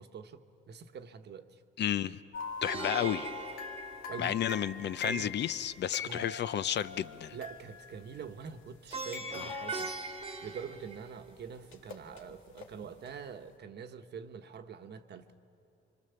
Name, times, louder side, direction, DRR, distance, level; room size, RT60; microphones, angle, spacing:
voice 1, 0.0-1.6 4.1-4.5 5.0-5.4 6.0-6.3 7.3-15.3, right 6 dB, 55° right, 1.1 m, -45 dB
voice 2, 1.8-2.2 2.6-3.3 4.2-7.4 9.3-9.5, left 10 dB, 60° left, 0.6 m, -32 dB
sound 1, 2.3-8.2 8.8-10.9 11.7-12.7 13.0-13.1, left 4 dB, 85° left, 1.6 m, -43 dB
Plucked string instrument, 2.6-4.8 8.9-11.5, right 4 dB, 30° right, 1.3 m, -41 dB
26.0 x 24.5 x 6.9 m
cardioid pair, 90°, 20 cm